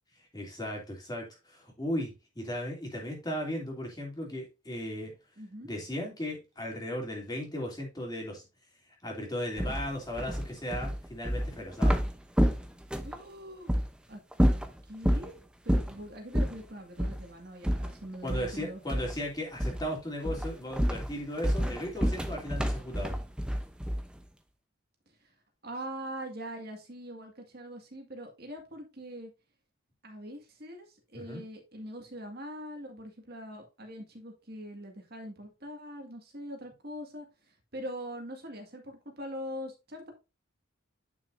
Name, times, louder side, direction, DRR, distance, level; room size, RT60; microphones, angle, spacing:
voice 1, 0.3-5.1 5.6-8.5 9.0-12.0 18.2-23.2 31.1-31.4, equal, 20° left, 2.7 m, -36 dB
voice 2, 5.4-5.7 13.0-13.7 14.1-14.2 14.9-18.8 25.6-29.3 30.0-37.3 37.7-40.1, equal, 45° right, 1.9 m, -42 dB
sound 1, 9.6-13.2 13.7-13.9 14.3-15.3 15.7-16.0 16.3-16.6 17.0-17.2 17.6-18.6 18.9-19.2 19.6-19.9 20.2-24.2, equal, 5° right, 0.7 m, -28 dB
9.7 x 6.3 x 2.6 m
head